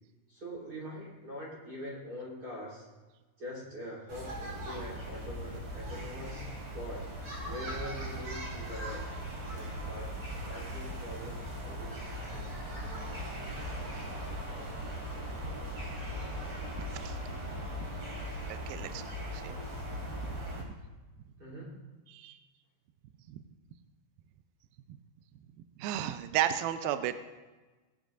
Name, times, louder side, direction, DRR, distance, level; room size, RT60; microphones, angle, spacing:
voice 1, 0.3-2.9 3.4-6.5 6.7-7.1 7.4-9.1 9.5-10.2 10.4-12.5 20.0-20.1 21.4-21.8, equal, 25° right, -5 dB, 3.9 m, -43 dB
sound 1, 4.1-20.6, equal, 40° right, 2.6 m, -39 dB
voice 2, 16.8-17.2 17.5-17.7 18.5-19.0 19.3-19.6 20.6-20.7 22.1-22.4 23.3-23.4 25.8-27.2, right 12 dB, 85° right, 10 dB, 2.1 m, -34 dB
20.0 x 11.0 x 2.6 m, 1.2 s
omnidirectional pair, 4.9 m